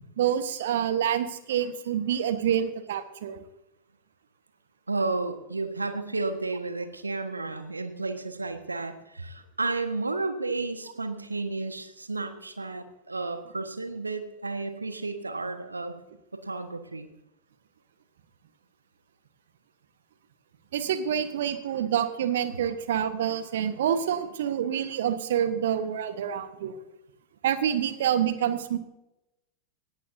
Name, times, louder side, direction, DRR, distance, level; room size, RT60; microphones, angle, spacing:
voice 1, 0.2-3.4 20.7-26.8 27.4-28.8, right 9 dB, 60° right, 11 dB, 1.3 m, -27 dB
voice 2, 4.9-15.9 16.3-17.1, right 3 dB, 80° right, 9 dB, 1.5 m, -32 dB
18.5 x 14.5 x 2.8 m, 0.91 s
figure-of-eight pair, 90°, 0 cm